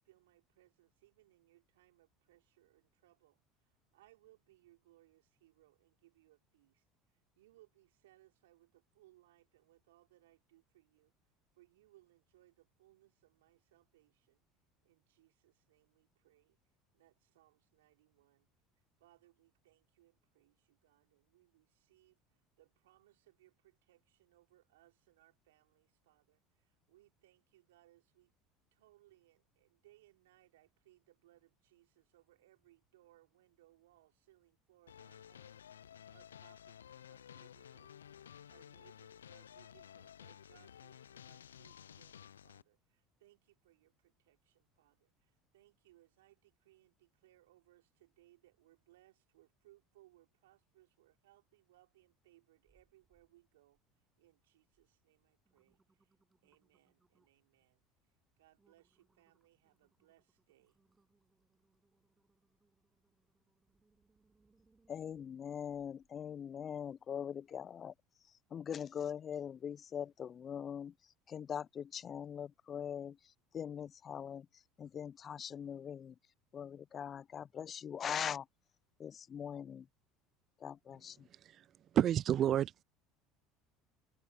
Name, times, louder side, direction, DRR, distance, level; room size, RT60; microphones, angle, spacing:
voice 1, 0.0-14.4 14.8-16.6 16.9-18.5 19.0-28.3 28.7-56.2 56.4-60.8, right 16 dB, 75° right, 3.6 m, -69 dB
sound 1, 34.9-42.6, left 9 dB, 85° left, 0.5 m, -55 dB
sound 2, 52.6-53.3 53.7-54.2 54.7-54.9 55.3-57.5 58.0-58.1 58.6-66.1 66.6-66.7, right 3 dB, 20° right, 7.5 m, -76 dB
voice 2, 64.9-67.9 68.5-76.1 76.5-78.5 79.0-79.9 80.6-81.3, left 8 dB, 40° left, 0.7 m, -42 dB
voice 3, 81.9-82.8, right 11 dB, 45° right, 0.3 m, -30 dB
hypercardioid pair, 70°, 0 cm